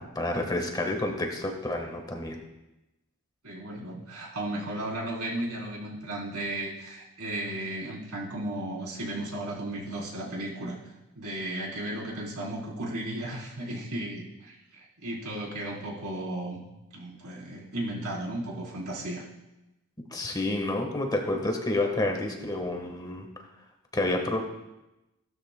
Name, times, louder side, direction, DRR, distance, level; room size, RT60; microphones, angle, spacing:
voice 1, 0.0-2.4 20.1-23.3 23.9-24.4, left 2 dB, 20° left, 3 dB, 1.3 m, -29 dB
voice 2, 3.4-10.8 11.2-16.6 16.9-19.2, right 1 dB, 85° right, -3 dB, 3.6 m, -35 dB
16.0 x 12.5 x 2.2 m, 0.97 s
head